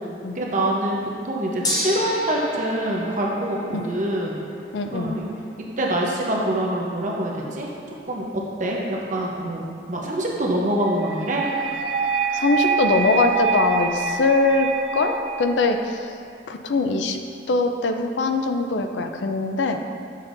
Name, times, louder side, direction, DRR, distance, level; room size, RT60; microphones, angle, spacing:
voice 1, 0.3-1.0 1.2-4.4 4.9-5.3 5.8-7.7 8.1-8.3 8.6-11.5, right 1 dB, 45° right, -2 dB, 0.8 m, -25 dB
Gong, 1.6-11.9, left 1 dB, 20° left, 0.8 m, -36 dB
voice 2, 4.7-5.2 12.3-14.7 14.9-16.2 16.5-17.2 17.5-19.8, left 3 dB, 85° left, 6 dB, 0.5 m, -22 dB
sound 1, 11.0-16.0, right 5 dB, 85° right, 0.4 m, -26 dB
7.1 x 6.5 x 2.6 m, 2.4 s
head